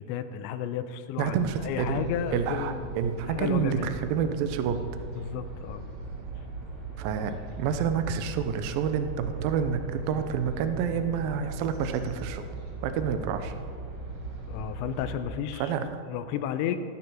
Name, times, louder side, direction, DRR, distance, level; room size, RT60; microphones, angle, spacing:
voice 1, 0.0-3.9 5.2-5.9 6.4-6.5 14.5-15.7 16.1-16.8, left 9 dB, 90° left, 10 dB, 2.9 m, -33 dB
sound 1, 1.2-15.2, right 3 dB, 50° right, 2.4 m, -38 dB
voice 2, 1.2-2.0 2.3-4.8 7.0-12.4 12.8-13.5 15.6-15.8, right 7 dB, 80° right, 8 dB, 2.0 m, -28 dB
16.0 x 8.8 x 6.2 m, 2.2 s
omnidirectional pair, 5.2 m